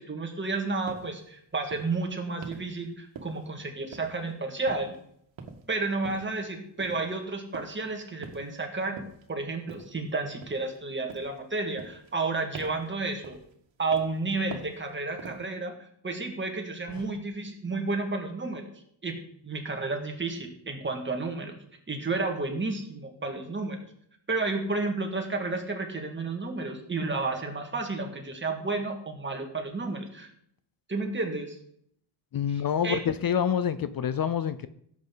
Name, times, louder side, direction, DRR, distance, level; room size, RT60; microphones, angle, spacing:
voice 1, 0.0-4.9 5.7-9.0 9.3-13.4 13.8-15.7 16.0-18.6 19.0-19.2 19.4-21.6 21.9-23.9 24.3-30.3 30.9-31.6 32.5-33.0, right 3 dB, 25° right, 3 dB, 2.0 m, -31 dB
sound 1, 0.9-1.1 1.7-2.0 2.4-2.7 3.2-3.6 3.9-4.3 4.7-5.0 5.4-5.7 6.0-6.3 6.8-7.1 7.5-7.8 8.2-8.6 9.0-9.3 9.7-10.0 10.4-10.8 11.1-11.4 11.8-12.3 12.5-12.9 13.2-13.5 13.9-14.2 14.5-14.8 15.2-15.5, right 5 dB, 85° right, 1.8 m, -44 dB
voice 2, 32.3-34.7, left 8 dB, 50° left, 13 dB, 0.6 m, -27 dB
16.5 x 7.9 x 3.9 m, 0.68 s
wide cardioid pair, 150°, 45 cm